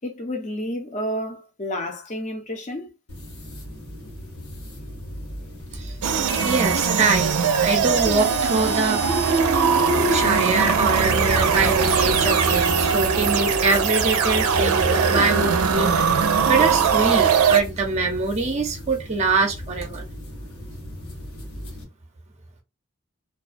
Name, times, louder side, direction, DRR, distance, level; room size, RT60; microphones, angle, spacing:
voice 1, 0.0-2.9, equal, 35° left, 0.5 m, -30 dB
sound 1, 3.1-21.8, equal, 75° left, 1.1 m, -38 dB
sound 2, 6.0-17.6, right 6 dB, 85° right, 0.4 m, -20 dB
voice 2, 6.4-9.6 10.1-20.0, right 3 dB, 30° right, 0.5 m, -24 dB
2.3 x 2.2 x 2.4 m
head